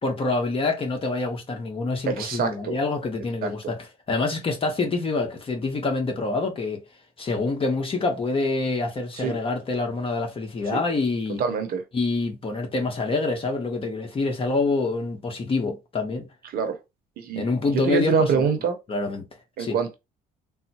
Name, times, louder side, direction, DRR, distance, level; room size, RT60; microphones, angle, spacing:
voice 1, 0.0-6.8 7.2-11.4 11.9-16.3 17.3-18.5 18.9-19.2 19.6-19.8, left 3 dB, 35° left, 1.0 m, -26 dB
voice 2, 2.1-2.7 3.4-3.5 9.2-9.3 10.7-10.8 11.4-11.8 16.5-16.8 17.2-17.5 17.8-18.8 19.6-19.9, right 6 dB, 60° right, 0.8 m, -24 dB
3.9 x 2.0 x 2.8 m
cardioid pair, 110°, 17 cm